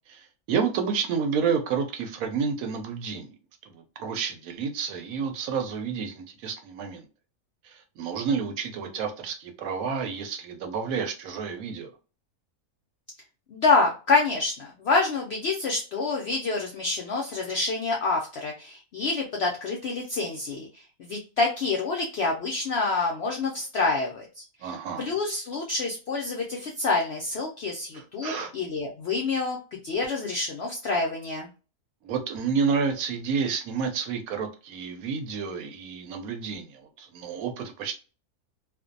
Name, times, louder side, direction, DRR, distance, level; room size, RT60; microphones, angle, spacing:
voice 1, 0.1-3.3 3.6-7.0 7.6-11.9 24.6-25.1 27.9-28.5 32.0-37.9, right 6 dB, 75° right, 0.9 m, -30 dB
voice 2, 13.5-20.7 21.0-24.7 25.0-29.6 29.8-31.5, left 3 dB, 75° left, 0.6 m, -27 dB
2.5 x 2.2 x 2.5 m
omnidirectional pair, 1.6 m